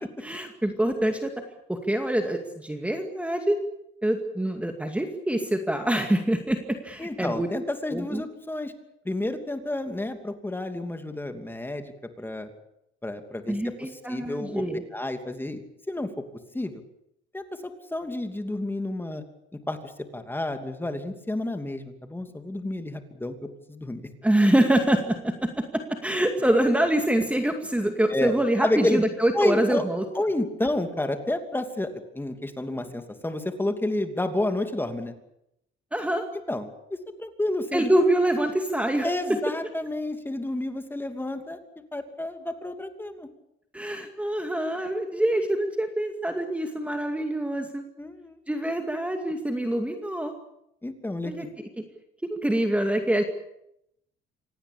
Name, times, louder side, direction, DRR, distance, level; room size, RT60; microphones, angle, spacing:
voice 1, 0.2-1.3 1.7-3.6 4.0-7.5 7.9-8.2 13.5-14.8 24.2-30.0 35.9-36.2 37.7-39.1 43.7-47.8 48.5-50.3 51.2-51.5 52.3-53.2, right 1 dB, 5° right, 5 dB, 2.3 m, -25 dB
voice 2, 7.0-8.7 9.0-12.5 13.0-14.6 14.9-15.6 15.9-16.2 16.5-16.8 17.3-19.2 19.7-24.0 28.1-28.3 28.6-29.0 29.3-29.8 30.1-35.1 36.5-37.9 39.0-41.6 41.9-43.3 48.0-48.4 50.8-51.5, left 1 dB, 10° left, 7 dB, 2.8 m, -30 dB
26.0 x 18.0 x 8.6 m, 0.80 s
cardioid pair, 115°, 21 cm